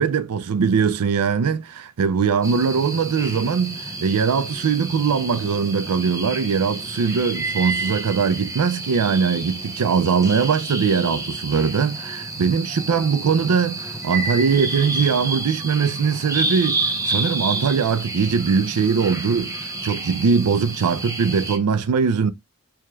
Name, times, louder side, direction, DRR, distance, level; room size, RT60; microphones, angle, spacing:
voice 1, 0.0-16.8 17.1-19.5 19.8-22.3, right 6 dB, 90° right, 0.4 m, -21 dB
sound 1, 2.4-21.6, right 2 dB, 15° right, 0.6 m, -29 dB
4.6 x 2.8 x 2.2 m
head